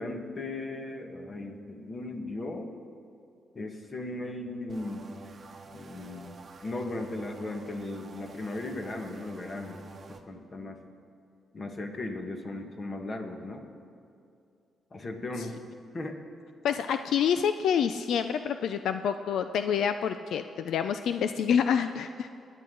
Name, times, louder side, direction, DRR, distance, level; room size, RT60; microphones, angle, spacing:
voice 1, 0.0-2.7 3.5-5.1 5.7-9.8 10.3-10.8 11.5-13.7 14.9-15.6 15.9-16.2, left 2 dB, 30° left, 3 dB, 1.6 m, -37 dB
sound 1, 4.7-10.2, right 3 dB, 35° right, 1.0 m, -49 dB
voice 2, 16.6-22.3, left 8 dB, 75° left, 9 dB, 0.4 m, -27 dB
28.5 x 10.0 x 3.9 m, 2.5 s
cardioid pair, 130°, 0 cm